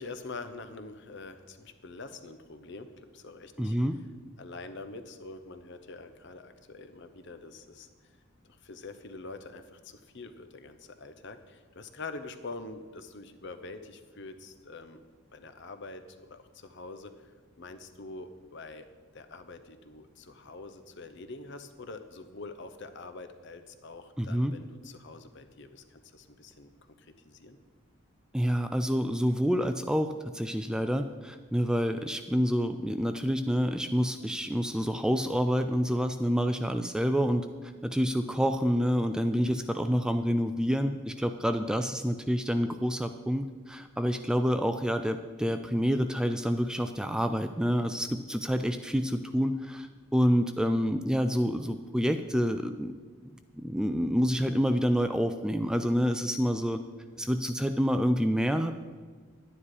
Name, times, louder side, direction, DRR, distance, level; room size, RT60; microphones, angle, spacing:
voice 1, 0.0-3.8 4.4-7.9 8.4-15.0 15.3-17.3 17.6-18.9 19.1-26.7 27.0-27.6, left 3 dB, 60° left, 9 dB, 0.8 m, -45 dB
voice 2, 3.6-4.0 24.2-24.5 28.3-52.9 53.6-56.8 57.2-58.7, equal, 5° right, 8 dB, 0.3 m, -28 dB
11.5 x 9.8 x 4.8 m, 1.5 s
head